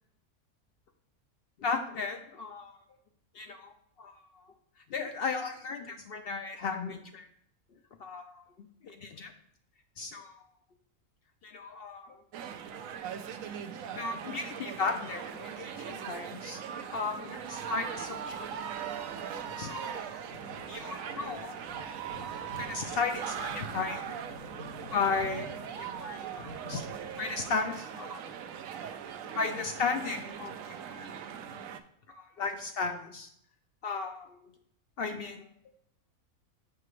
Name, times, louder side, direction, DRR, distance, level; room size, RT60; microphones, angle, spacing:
voice 1, 1.6-2.8 3.3-4.5 4.9-7.3 8.0-9.3 10.0-10.5 11.4-12.2 14.0-16.6 16.9-18.7 19.6-20.1 20.7-21.6 22.6-24.1 24.8-25.5 25.7-28.2 29.2-31.1 32.1-33.3 33.8-34.5 35.0-35.4, left 4 dB, 60° left, 6 dB, 0.6 m, -35 dB
sound 1, 12.3-31.8, right 8 dB, 75° right, 1.0 m, -40 dB
sound 2, 15.0-27.3, left 2 dB, 80° left, 1.6 m, -51 dB
6.7 x 5.7 x 3.1 m, 0.70 s
omnidirectional pair, 1.4 m